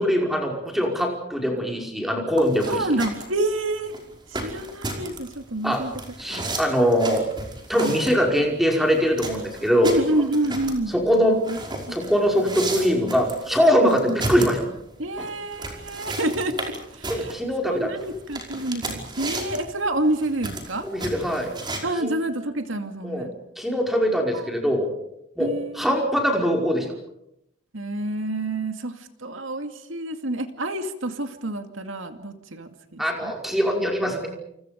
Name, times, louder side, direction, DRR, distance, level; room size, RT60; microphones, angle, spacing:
voice 1, 0.0-2.9 5.6-5.8 6.2-7.3 7.7-10.0 10.9-11.4 11.9-14.6 15.2-15.3 17.1-17.9 20.8-21.5 22.0-22.1 23.0-23.3 23.6-24.9 25.4-26.9 33.0-34.3, equal, ahead, 1 dB, 5.3 m, -22 dB
sound 1, 2.4-21.8, right 2 dB, 20° right, 5.2 m, -34 dB
voice 2, 2.4-4.0 4.3-5.9 6.3-6.5 7.8-8.0 9.8-10.9 11.5-11.6 11.9-12.0 13.8-14.2 15.0-17.3 17.6-20.9 21.8-23.3 24.3-24.5 25.4-25.8 27.7-33.3, right 1 dB, 80° right, 7 dB, 2.3 m, -28 dB
29.5 x 28.5 x 5.2 m, 0.79 s
head